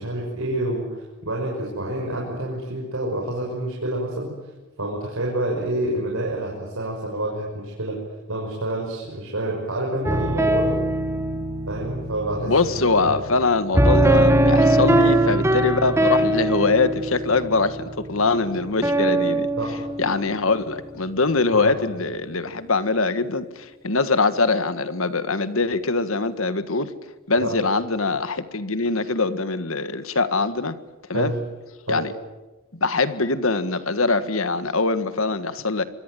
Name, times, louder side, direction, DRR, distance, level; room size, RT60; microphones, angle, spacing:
voice 1, 0.0-4.3 4.8-8.0 8.3-10.8 11.7-13.2 14.9-15.2 19.6-19.8 21.5-21.7 27.4-27.6 31.1-31.4 31.9-32.0, right 1 dB, 75° right, 5.9 m, -28 dB
sound 1, 10.0-20.9, right 1 dB, 10° right, 1.5 m, -22 dB
voice 2, 12.5-19.5 20.0-26.9 27.3-30.8 31.1-31.3 31.9-32.1 32.7-35.8, left 3 dB, 65° left, 1.7 m, -23 dB
26.0 x 23.0 x 9.3 m
head